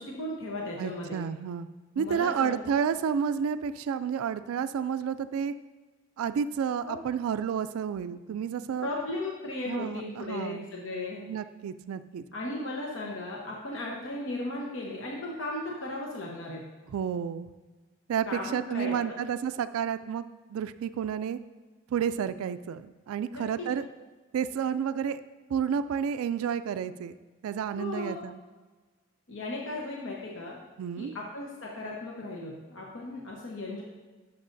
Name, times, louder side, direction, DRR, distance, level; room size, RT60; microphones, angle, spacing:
voice 1, 0.0-1.2 1.9-2.6 6.8-7.0 8.8-11.2 12.3-16.6 18.3-19.1 23.3-23.7 27.8-28.2 29.3-30.6 31.0-33.8, left 2 dB, 65° left, -2 dB, 0.9 m, -36 dB
voice 2, 0.8-1.7 2.0-5.5 6.2-8.9 9.7-10.7 11.2-12.2 16.9-17.5 18.1-21.4 21.9-23.9 24.3-25.2 25.5-27.1 27.4-28.4 30.8-31.2, right 7 dB, 85° right, 13 dB, 0.3 m, -31 dB
11.5 x 5.9 x 2.6 m, 1.3 s
head